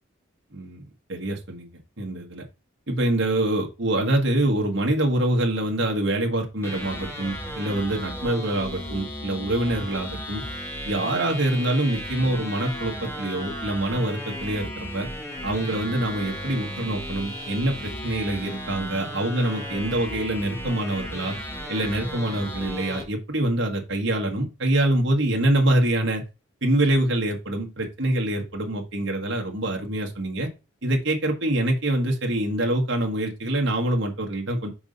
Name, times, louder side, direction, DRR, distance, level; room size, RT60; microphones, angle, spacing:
voice 1, 0.5-0.8 1.1-1.7 2.0-2.4 2.9-10.4 10.8-15.1 15.4-21.3 21.7-26.2 26.6-30.5 30.8-34.7, right 1 dB, 65° right, 1 dB, 1.5 m, -25 dB
sound 1, 6.6-23.0, equal, 10° left, 1.3 m, -35 dB
5.9 x 4.0 x 5.3 m, 0.28 s
head